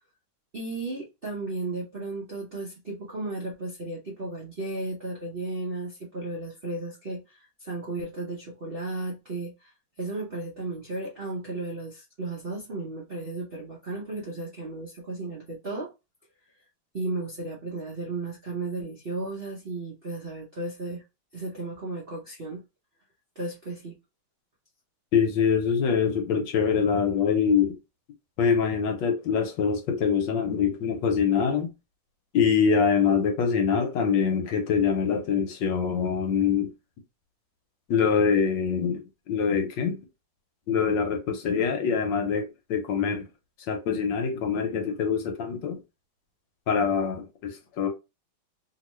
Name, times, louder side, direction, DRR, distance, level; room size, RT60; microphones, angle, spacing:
voice 1, 0.5-9.7 10.0-15.9 16.9-21.0 21.3-22.6 23.4-24.0, right 2 dB, 50° right, 0.6 m, -34 dB
voice 2, 25.1-27.8 28.4-31.7 32.3-36.7 37.9-40.0 40.7-43.3 43.7-45.8 46.7-47.9, left 6 dB, 70° left, 1.3 m, -24 dB
3.0 x 2.8 x 3.0 m
omnidirectional pair, 2.2 m